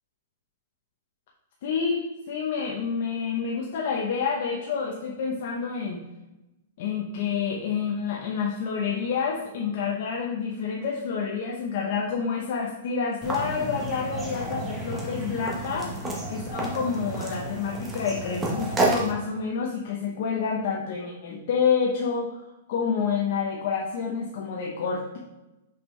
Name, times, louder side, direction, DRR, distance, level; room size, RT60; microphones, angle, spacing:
voice 1, 1.6-6.0 6.8-15.9 16.3-22.4 22.7-25.2, left 6 dB, 50° left, -1 dB, 0.8 m, -28 dB
sound 1, 13.2-19.1, right 2 dB, 10° right, 1.0 m, -30 dB
5.7 x 5.4 x 3.2 m, 0.99 s
hypercardioid pair, 160°, 0 cm